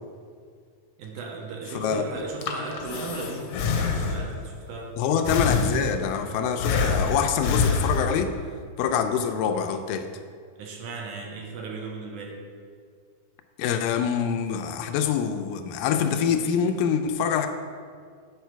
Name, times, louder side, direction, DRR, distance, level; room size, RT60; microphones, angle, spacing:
voice 1, 1.0-4.9 10.6-12.4, right 3 dB, 75° right, 0 dB, 2.3 m, -36 dB
voice 2, 1.8-2.1 5.0-8.3 8.8-10.1 13.6-17.5, left 7 dB, 90° left, 6 dB, 2.3 m, -25 dB
Breathing, 2.2-4.5 5.3-6.2 6.6-8.4, left 5 dB, 75° left, 1.7 m, -26 dB
9.2 x 5.0 x 4.6 m, 2.1 s
omnidirectional pair, 3.9 m